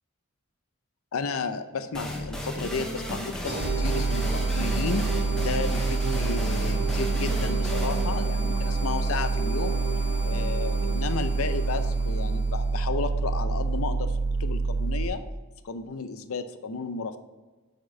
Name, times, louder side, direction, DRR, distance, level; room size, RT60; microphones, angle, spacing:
voice 1, 1.1-5.1 5.4-9.8 10.2-15.2 15.6-17.2, left 4 dB, 70° left, 11 dB, 0.6 m, -33 dB
sound 1, 1.9-9.4, equal, 5° left, 0.8 m, -35 dB
sound 2, 3.4-12.8, right 3 dB, 35° right, 1.9 m, -35 dB
sound 3, 3.6-15.1, right 3 dB, 70° right, 0.7 m, -27 dB
6.1 x 5.2 x 5.8 m, 1.3 s
head